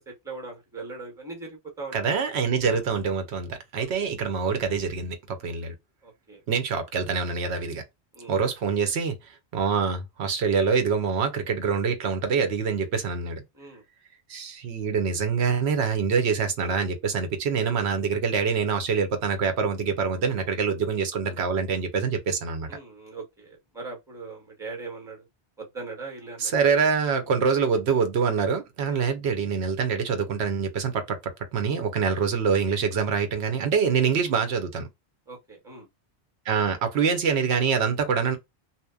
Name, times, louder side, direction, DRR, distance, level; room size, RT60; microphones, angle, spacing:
voice 1, 0.1-1.9 2.6-2.8 3.8-4.1 6.0-6.4 8.1-8.3 13.6-13.8 22.7-25.2 25.6-26.5 28.9-29.1 34.2-34.3 35.3-35.9, right 3 dB, 5° right, 0.7 m, -40 dB
voice 2, 1.9-5.7 6.5-7.8 8.3-9.2 9.5-13.4 14.3-22.7 26.4-34.9 36.5-38.4, right 5 dB, 85° right, 0.9 m, -25 dB
2.8 x 2.1 x 2.2 m
omnidirectional pair, 1.1 m